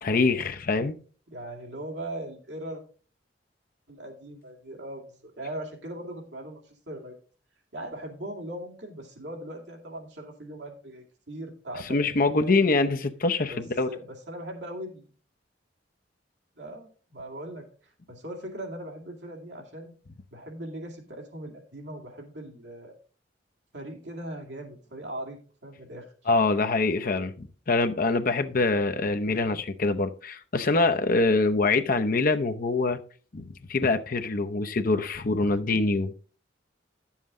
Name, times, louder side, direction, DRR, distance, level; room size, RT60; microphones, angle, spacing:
voice 1, 0.0-1.0 11.9-13.9 26.3-33.0 33.3-33.4 33.7-36.1, left 3 dB, 50° left, 0.7 m, -24 dB
voice 2, 1.3-2.8 3.9-7.2 7.7-12.9 13.5-15.0 16.6-19.9 20.3-22.9 23.7-26.1, right 1 dB, 65° right, 2.4 m, -40 dB
10.5 x 7.3 x 3.7 m
head